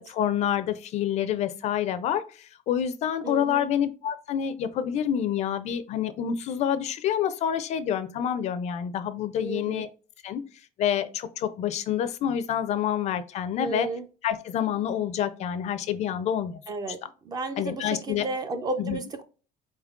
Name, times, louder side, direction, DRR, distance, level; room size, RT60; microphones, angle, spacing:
voice 1, 0.0-9.9 10.2-10.4 10.8-13.9 14.2-16.6 17.6-18.3 18.8-19.0, left 9 dB, 40° left, 0.4 m, -27 dB
voice 2, 3.2-3.7 9.4-9.8 13.6-14.0 16.7-17.0 17.2-19.2, right 2 dB, 20° right, 0.4 m, -33 dB
4.3 x 3.6 x 2.3 m
cardioid pair, 170°, 17 cm